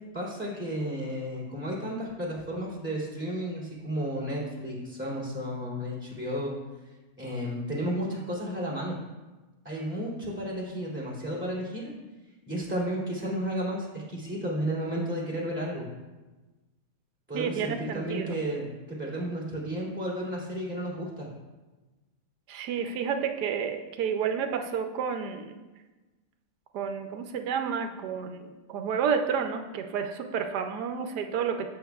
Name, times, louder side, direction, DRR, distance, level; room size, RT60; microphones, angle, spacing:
voice 1, 0.1-6.6 7.2-9.0 9.6-11.9 12.5-15.9 17.3-21.3, equal, 5° right, -7 dB, 2.8 m, -33 dB
voice 2, 17.3-18.4 22.5-25.6 26.7-31.7, right 7 dB, 90° right, 6 dB, 1.2 m, -30 dB
12.0 x 7.9 x 2.3 m, 1.2 s
omnidirectional pair, 1.7 m